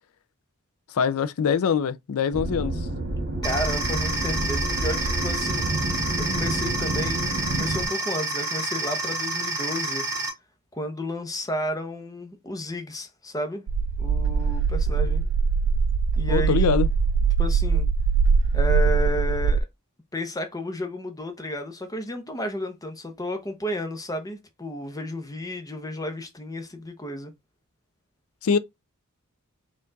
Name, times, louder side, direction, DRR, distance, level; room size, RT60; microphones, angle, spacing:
voice 1, 0.9-2.9 16.3-16.9 28.4-28.6, left 6 dB, 70° left, 0.4 m, -23 dB
sound 1, 2.3-7.8, right 2 dB, 50° right, 1.5 m, -29 dB
voice 2, 3.4-7.2 7.5-10.1 10.7-13.6 14.0-15.3 16.2-16.7 17.4-17.9 18.5-19.7 20.1-27.3, equal, 15° left, 0.8 m, -32 dB
sound 2, 3.4-10.3, right 2 dB, 15° right, 1.4 m, -29 dB
sound 3, 13.7-19.6, right 5 dB, 85° right, 0.3 m, -22 dB
4.3 x 2.4 x 3.9 m
head